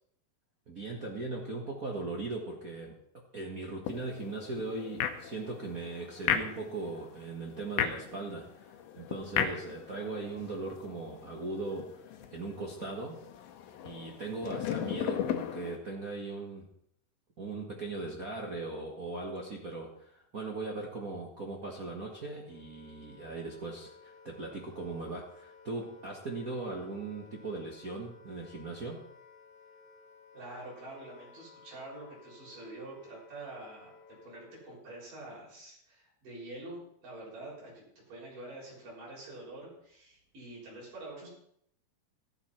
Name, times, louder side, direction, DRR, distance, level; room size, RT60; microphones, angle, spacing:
voice 1, 0.7-13.2 13.8-16.7 17.4-29.1, right 3 dB, 80° right, -2 dB, 0.7 m, -39 dB
sound 1, 3.8-15.8, left 9 dB, 85° left, 3.0 m, -37 dB
Wind instrument woodwind instrument, 22.3-34.9, left 4 dB, 60° left, 2.5 m, -57 dB
voice 2, 30.3-33.9 34.2-41.3, right 2 dB, 60° right, -5 dB, 8.4 m, -46 dB
14.0 x 13.0 x 4.4 m, 0.71 s
omnidirectional pair, 4.3 m